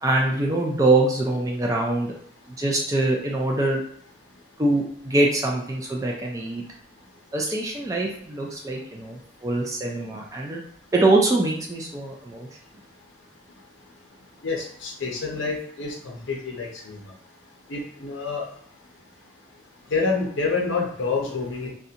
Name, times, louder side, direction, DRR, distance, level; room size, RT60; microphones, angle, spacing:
voice 1, 0.0-2.1 2.6-3.8 4.6-6.6 7.3-10.6 10.9-12.5, right 2 dB, 15° right, -1 dB, 0.3 m, -23 dB
voice 2, 14.4-17.0 17.7-18.4 19.9-21.7, left 4 dB, 60° left, -1 dB, 0.6 m, -27 dB
2.5 x 2.1 x 2.7 m, 0.65 s
head